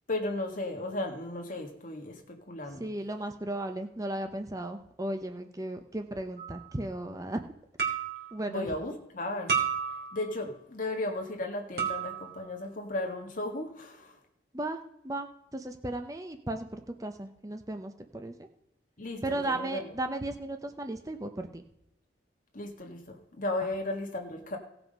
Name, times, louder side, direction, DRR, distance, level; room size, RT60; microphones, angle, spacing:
voice 1, 0.1-2.8 8.5-9.5 10.1-14.2 19.0-19.9 22.5-24.6, left 2 dB, 45° left, 3 dB, 1.8 m, -35 dB
voice 2, 2.8-7.4 8.3-8.7 14.5-18.3 19.2-21.7, right 1 dB, 20° right, 6 dB, 0.7 m, -35 dB
sound 1, 6.4-6.6 7.8-8.3 9.5-10.4 11.8-12.4, right 7 dB, 60° right, 2.8 m, -31 dB
17.0 x 5.9 x 5.4 m, 0.87 s
head